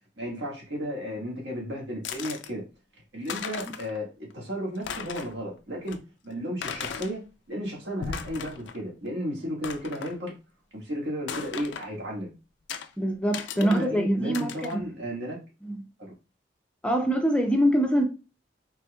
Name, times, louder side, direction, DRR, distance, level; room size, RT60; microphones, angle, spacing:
voice 1, 0.2-2.6 3.1-4.1 4.3-6.0 6.2-7.2 7.5-10.3 10.7-12.3 13.6-15.4 16.0-16.1, equal, 75° right, 1.6 m, -33 dB
sound 1, 2.0-2.5 3.0-3.1 3.3-4.0 4.3-4.4 4.8-5.4 5.9-6.0 6.6-7.1 7.9-8.8 9.1-9.2 9.6-10.2 11.3-11.9 12.7-12.9 13.3-13.9 14.3-14.8, left 6 dB, 85° left, 0.4 m, -36 dB
voice 2, 13.0-14.8 15.6-15.9 16.8-18.0, equal, 5° left, 0.4 m, -24 dB
4.3 x 3.1 x 2.2 m
head